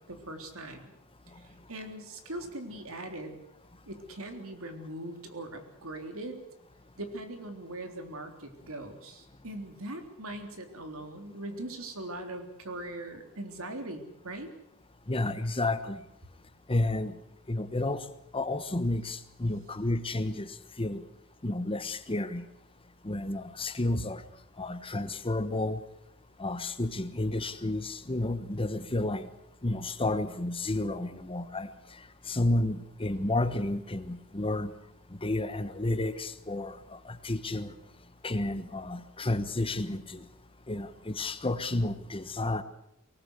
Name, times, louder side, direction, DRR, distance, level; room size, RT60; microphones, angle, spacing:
voice 1, 0.1-0.9 1.4-3.4 3.9-6.4 7.0-14.5, right 1 dB, 70° right, 6 dB, 3.6 m, -41 dB
voice 2, 15.1-16.0 16.7-17.1 17.5-18.0 18.3-21.0 21.4-22.4 23.0-24.2 24.6-25.8 26.4-29.2 29.6-31.7 32.3-34.7 35.2-37.7 38.2-40.2 40.7-42.6, left 2 dB, 25° left, 12 dB, 1.2 m, -31 dB
24.0 x 19.0 x 8.1 m, 0.77 s
head